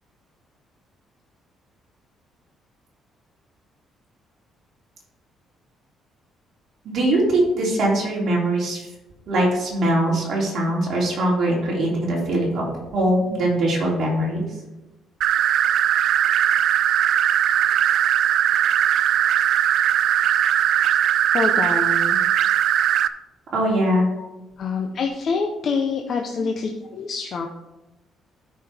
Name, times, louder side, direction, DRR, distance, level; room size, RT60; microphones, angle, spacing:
voice 1, 6.8-8.9 9.3-12.6 12.9-14.4 23.5-24.0, right 1 dB, 45° right, -4 dB, 2.9 m, -21 dB
sound 1, 15.2-23.1, right 10 dB, 60° right, 0.4 m, -19 dB
voice 2, 21.3-22.2 24.2-24.3 24.6-27.5, left 5 dB, 40° left, 3 dB, 0.7 m, -26 dB
13.0 x 5.3 x 3.4 m, 1.0 s
cardioid pair, 170°, 0 cm